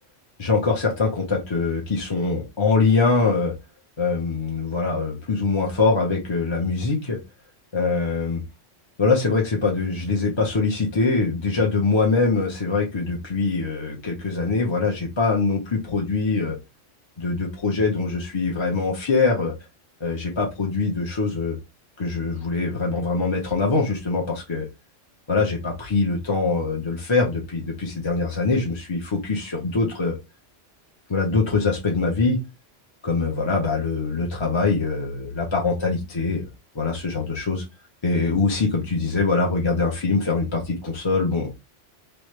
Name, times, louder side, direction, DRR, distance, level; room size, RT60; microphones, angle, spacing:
voice 1, 0.4-3.5 4.0-7.2 7.7-8.4 9.0-16.6 17.2-19.5 20.0-21.6 22.0-24.7 25.3-30.2 31.1-32.4 33.0-36.5 36.7-37.6 38.0-41.5, left 4 dB, 30° left, 0.6 m, -23 dB
3.2 x 2.5 x 3.0 m
omnidirectional pair, 1.2 m